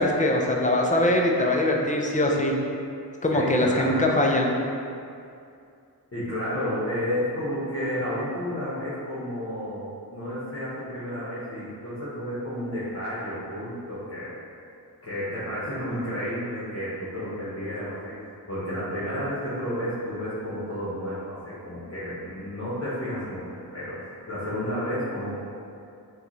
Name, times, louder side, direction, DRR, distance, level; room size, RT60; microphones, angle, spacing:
voice 1, 0.0-2.5 3.2-4.5, left 1 dB, 20° left, 0 dB, 0.4 m, -22 dB
voice 2, 3.3-4.2 6.1-14.4 15.0-25.4, equal, 35° left, -11 dB, 1.0 m, -31 dB
6.3 x 2.4 x 3.1 m, 2.5 s
wide cardioid pair, 120°, 39 cm